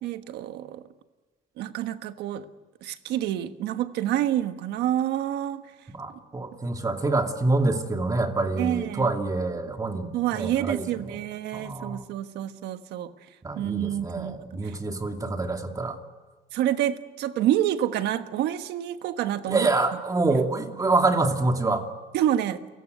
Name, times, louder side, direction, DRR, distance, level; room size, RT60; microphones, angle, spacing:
voice 1, 0.0-0.8 1.6-2.4 2.8-5.7 8.6-9.1 10.1-13.1 13.5-14.8 15.2-15.3 16.5-19.7 20.3-20.4 22.1-22.6, right 12 dB, 80° right, 10 dB, 1.3 m, -28 dB
voice 2, 5.9-11.2 11.5-12.0 13.4-16.0 19.5-21.8, right 3 dB, 20° right, 4 dB, 2.6 m, -26 dB
29.5 x 17.5 x 9.4 m, 1.3 s
cardioid pair, 110°, 17 cm